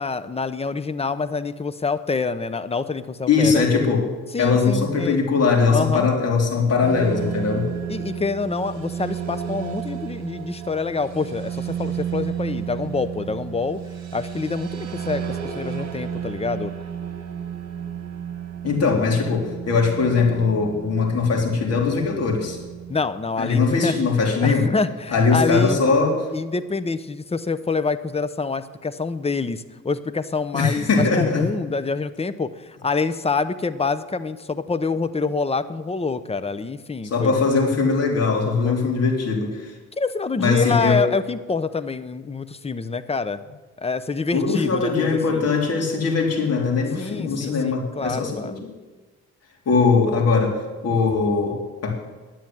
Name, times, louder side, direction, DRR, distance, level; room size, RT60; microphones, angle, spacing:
voice 1, 0.0-3.6 4.3-5.2 5.7-6.1 7.9-13.8 14.1-16.7 22.9-24.0 24.4-25.8 26.3-37.3 38.6-39.0 40.0-43.4 43.8-45.5 47.0-48.6, left 4 dB, 20° left, 13 dB, 0.8 m, -26 dB
voice 2, 3.3-4.1 4.4-7.7 18.6-22.6 23.4-24.7 25.1-26.2 30.5-31.4 37.0-39.7 40.4-41.0 44.3-48.6 49.7-51.9, left 4 dB, 55° left, 0 dB, 3.6 m, -20 dB
sound 1, 6.8-23.0, right 8 dB, 60° right, 1.7 m, -32 dB
10.5 x 9.2 x 9.0 m, 1.3 s
cardioid pair, 90°, 30 cm